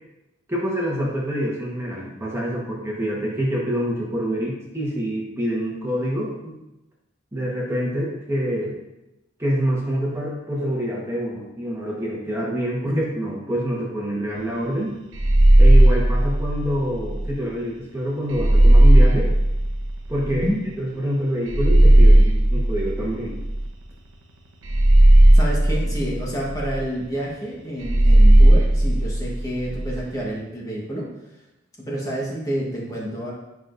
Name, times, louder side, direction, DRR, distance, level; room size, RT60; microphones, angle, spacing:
voice 1, 0.5-6.6 7.3-8.8 9.4-15.0 15.6-19.3 20.1-20.5 20.8-23.4, equal, 15° right, -4 dB, 1.2 m, -26 dB
sound 1, 15.1-17.3 18.3-20.5 21.5-23.8 24.6-26.8 27.8-30.0, right 1 dB, 85° right, 1.0 m, -15 dB
voice 2, 20.2-20.6 25.3-31.1 31.8-33.3, equal, 15° left, -4 dB, 1.2 m, -29 dB
10.0 x 5.9 x 2.6 m, 0.95 s
head